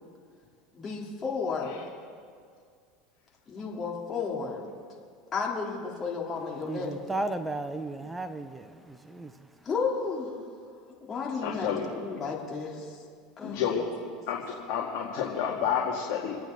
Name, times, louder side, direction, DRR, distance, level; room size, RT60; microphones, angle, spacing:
voice 1, 0.7-1.8 3.5-4.7 5.3-7.1 9.6-10.3 11.1-13.0 13.4-13.8, left 5 dB, 30° left, 3.3 m, -33 dB
voice 2, 6.6-9.5, right 2 dB, 10° right, 0.9 m, -35 dB
voice 3, 11.4-11.9 13.4-13.8 14.3-14.4 14.7-16.3, left 8 dB, 60° left, 2.1 m, -29 dB
27.0 x 9.2 x 4.0 m
supercardioid pair, 110°, 0 cm